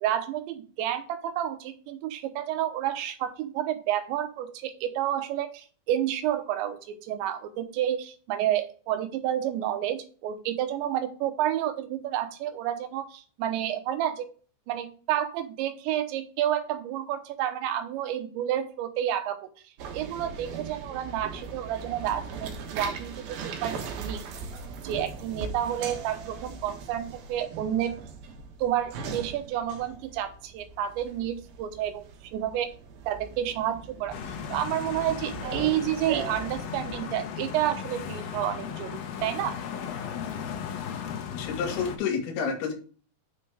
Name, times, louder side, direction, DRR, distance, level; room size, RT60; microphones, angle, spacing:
voice 1, 0.0-14.3 14.7-19.5 19.9-24.2 24.8-27.9 28.6-32.7 33.1-34.2 34.5-39.6, right 11 dB, 85° right, 9 dB, 3.3 m, -30 dB
sound 1, 19.8-37.0, right 6 dB, 65° right, 2.9 m, -40 dB
sound 2, 34.1-42.0, left 8 dB, 70° left, 2.5 m, -36 dB
voice 2, 41.4-42.7, left 6 dB, 90° left, 3 dB, 4.1 m, -29 dB
8.9 x 6.2 x 3.5 m, 0.41 s
omnidirectional pair, 5.0 m